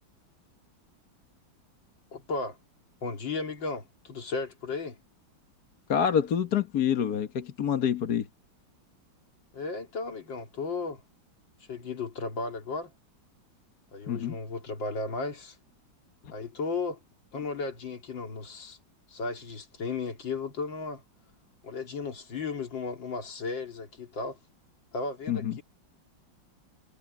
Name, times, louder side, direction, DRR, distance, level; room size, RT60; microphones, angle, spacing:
voice 1, 2.1-2.6 3.0-5.0 9.5-11.0 11.7-12.9 13.9-15.6 16.3-17.0 17.3-18.8 19.1-21.0 21.6-24.4 24.9-25.6, left 4 dB, 70° left, 3.4 m, -35 dB
voice 2, 5.9-8.3 14.1-14.4 25.3-25.6, left 8 dB, 55° left, 1.7 m, -27 dB
omnidirectional pair, 2.1 m